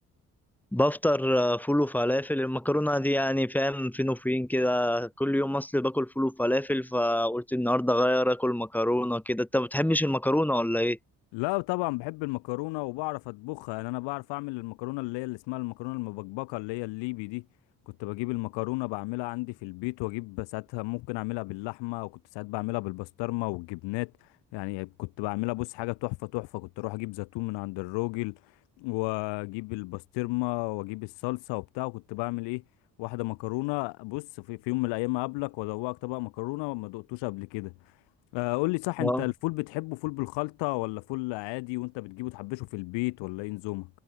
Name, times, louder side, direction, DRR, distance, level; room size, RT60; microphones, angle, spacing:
voice 1, 0.7-11.0 39.0-39.2, left 1 dB, 5° left, 1.8 m, -26 dB
voice 2, 11.3-17.4 17.9-32.6 33.0-38.0 38.3-43.9, left 25 dB, 60° left, 1.0 m, -33 dB
figure-of-eight pair, 40°, 48 cm